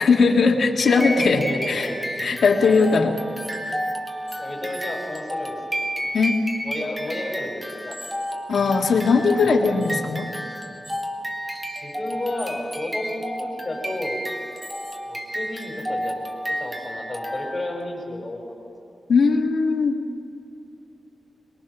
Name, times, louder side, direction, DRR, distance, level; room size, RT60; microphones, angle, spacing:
voice 1, 0.0-1.9 2.2-3.2 6.1-6.4 8.5-10.3 19.1-20.0, left 4 dB, 80° left, 2 dB, 1.8 m, -19 dB
sound 1, 0.8-17.8, equal, 10° right, 1.8 m, -31 dB
voice 2, 1.0-2.0 2.6-2.9 4.4-5.8 6.6-8.0 11.7-14.2 15.1-16.1 16.6-18.4, left 1 dB, 25° left, -2 dB, 5.4 m, -32 dB
23.0 x 22.5 x 6.1 m, 2.7 s
wide cardioid pair, 160°, 0 cm